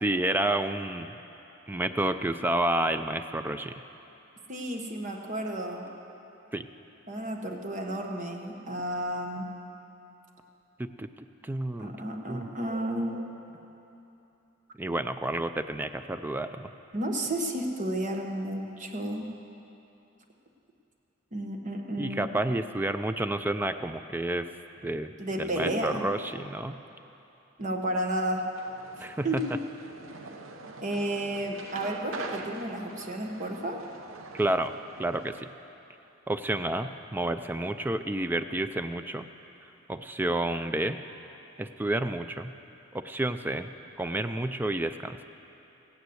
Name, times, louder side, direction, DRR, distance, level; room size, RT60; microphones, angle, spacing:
voice 1, 0.0-1.1 1.7-3.7 6.5-6.7 10.8-11.1 11.4-11.9 12.3-12.5 14.8-16.7 22.0-24.5 24.8-25.1 25.4-26.8 29.0-29.4 34.3-34.7 35.0-35.5 36.3-39.3 39.9-41.0 41.6-42.5 42.9-43.7 44.0-45.2, right 1 dB, 10° right, 9 dB, 0.3 m, -30 dB
voice 2, 4.5-5.9 7.1-9.5 11.8-13.3 16.9-19.3 21.3-22.3 25.2-26.1 27.6-28.5 29.2-29.6 30.8-33.8, right 1 dB, 40° right, 2 dB, 1.2 m, -32 dB
sound 1, 28.5-35.4, right 3 dB, 85° right, 0.9 m, -44 dB
16.0 x 9.6 x 7.9 m, 2.9 s
head